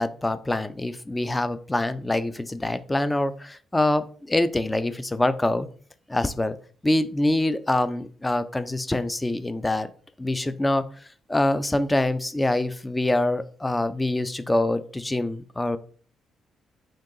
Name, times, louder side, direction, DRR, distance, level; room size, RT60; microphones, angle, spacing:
voice 1, 0.0-5.7 6.1-6.6 6.8-9.9 10.2-10.9 11.3-15.8, left 1 dB, 15° left, 12 dB, 0.4 m, -25 dB
3.8 x 2.7 x 3.7 m, 0.43 s
cardioid pair, 90°, 0 cm